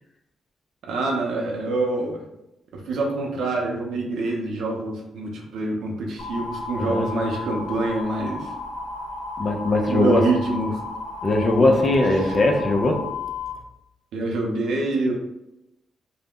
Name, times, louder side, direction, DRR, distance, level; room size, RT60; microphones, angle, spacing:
voice 1, 0.9-2.2 2.7-8.5 9.9-10.8 12.2-12.4 14.1-15.2, right 2 dB, 80° right, 0 dB, 0.6 m, -26 dB
sound 1, 6.2-13.5, left 3 dB, 85° left, 0.7 m, -33 dB
voice 2, 9.4-10.3 11.2-13.0, left 2 dB, 40° left, 3 dB, 0.4 m, -20 dB
2.4 x 2.1 x 3.5 m, 0.89 s
cardioid pair, 100°, 0 cm